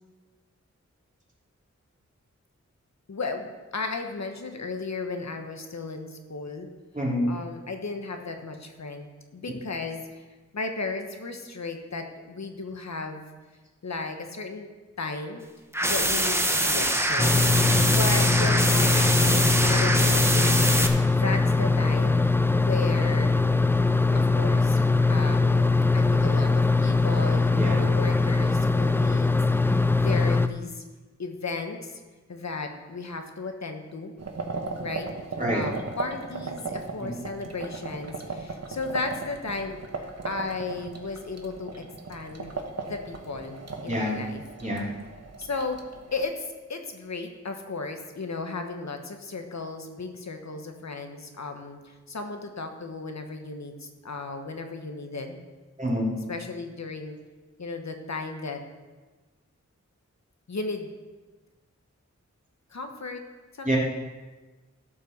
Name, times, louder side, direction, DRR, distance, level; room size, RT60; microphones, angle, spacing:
voice 1, 3.1-6.7 7.3-10.2 10.5-13.3 13.8-14.7 15.0-15.4 15.8-17.4 17.8-20.7 21.1-22.2 22.6-23.4 24.1-24.8 25.1-25.7 25.9-27.5 27.7-30.8 31.2-32.0 32.3-34.1 34.8-35.1 35.5-42.5 42.8-43.6 43.8-44.4 45.4-45.8 46.1-55.4 56.3-57.2 57.6-58.6 60.5-60.9 62.7-63.2 63.5-63.8, left 3 dB, 65° left, 5 dB, 1.2 m, -35 dB
voice 2, 6.9-7.3 17.6-17.9 27.5-27.8 35.4-35.6 37.0-37.1 43.9-44.2 44.6-44.8 55.8-56.1 63.6-63.8, equal, 25° right, -5 dB, 3.2 m, -27 dB
sound 1, 15.7-20.9, right 1 dB, 10° right, 1.1 m, -24 dB
sound 2, 17.2-30.5, left 3 dB, 10° left, 0.4 m, -22 dB
sound 3, 34.2-46.2, right 3 dB, 60° right, 1.2 m, -37 dB
12.5 x 5.6 x 6.6 m, 1.3 s
wide cardioid pair, 60°, 29 cm